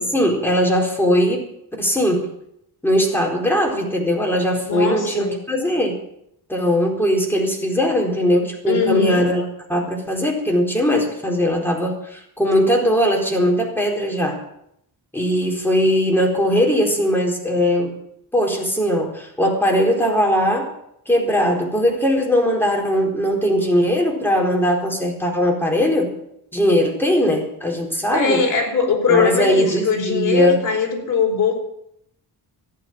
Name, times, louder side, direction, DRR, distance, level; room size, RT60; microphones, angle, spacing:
voice 1, 0.0-1.5 1.8-2.3 2.8-6.0 6.5-9.4 9.7-14.4 15.1-17.9 18.3-20.7 21.1-26.1 26.5-28.4 29.1-30.6, equal, 5° left, 0 dB, 4.1 m, -19 dB
voice 2, 4.6-5.3 8.7-9.3 28.1-31.5, left 5 dB, 50° left, 1 dB, 5.0 m, -20 dB
14.5 x 11.0 x 7.5 m, 0.76 s
wide cardioid pair, 120°, 40 cm